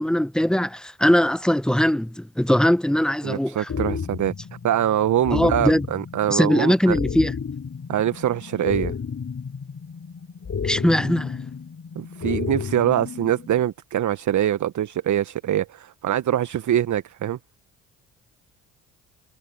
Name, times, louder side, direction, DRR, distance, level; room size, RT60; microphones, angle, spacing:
voice 1, 0.0-3.7 5.3-5.9 6.3-7.3 10.6-11.5, equal, ahead, 1.0 m, -21 dB
voice 2, 3.2-4.3 4.6-7.0 7.9-8.9 11.9-17.4, right 11 dB, 45° right, 1.4 m, -24 dB
sound 1, 3.7-13.7, left 6 dB, 35° left, 7.1 m, -32 dB
hypercardioid pair, 50°, 41 cm